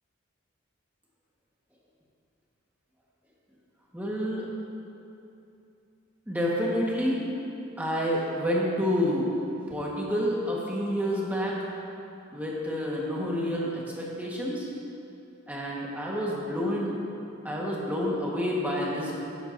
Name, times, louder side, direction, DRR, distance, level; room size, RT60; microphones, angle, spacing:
voice 1, 3.9-4.5 6.3-7.3 7.8-9.3 9.7-11.7 12.3-14.7 15.5-16.9 17.4-19.2, equal, 10° right, -5 dB, 1.3 m, -29 dB
12.5 x 10.0 x 2.6 m, 2.8 s
head